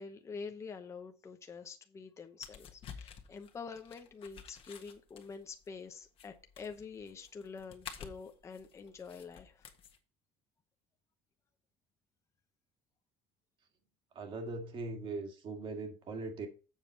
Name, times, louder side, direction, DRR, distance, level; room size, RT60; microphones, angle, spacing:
voice 1, 0.0-9.6, left 5 dB, 20° left, 0.9 m, -47 dB
sound 1, 2.4-10.0, left 7 dB, 45° left, 1.5 m, -51 dB
voice 2, 14.2-16.5, right 3 dB, 40° right, 1.8 m, -40 dB
7.4 x 6.8 x 4.3 m
cardioid pair, 145°, 13 cm